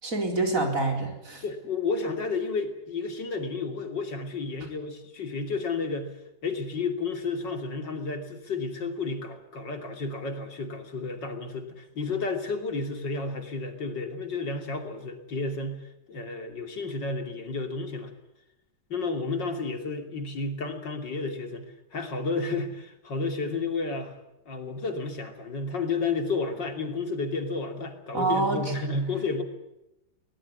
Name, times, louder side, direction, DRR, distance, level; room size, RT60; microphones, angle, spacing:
voice 1, 0.0-1.4 28.1-28.7, right 2 dB, 50° right, 3 dB, 4.6 m, -26 dB
voice 2, 1.4-6.1 6.4-15.8 16.1-18.1 18.9-24.2 24.5-29.4, left 3 dB, 90° left, 5 dB, 3.6 m, -31 dB
23.0 x 19.0 x 9.7 m, 0.89 s
omnidirectional pair, 1.9 m